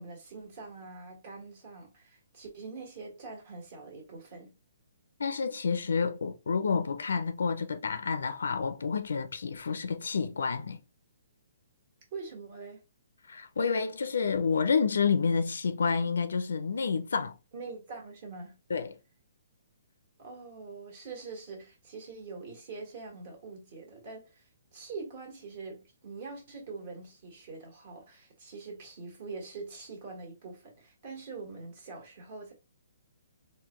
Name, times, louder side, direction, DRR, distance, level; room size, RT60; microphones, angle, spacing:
voice 1, 0.0-4.5 12.1-12.8 17.5-18.5 20.2-32.5, right 4 dB, 40° right, 1.4 m, -44 dB
voice 2, 5.2-10.8 13.3-17.4 18.7-18.9, left 5 dB, 85° left, 0.5 m, -29 dB
3.8 x 2.2 x 3.0 m
hypercardioid pair, 165°, 0 cm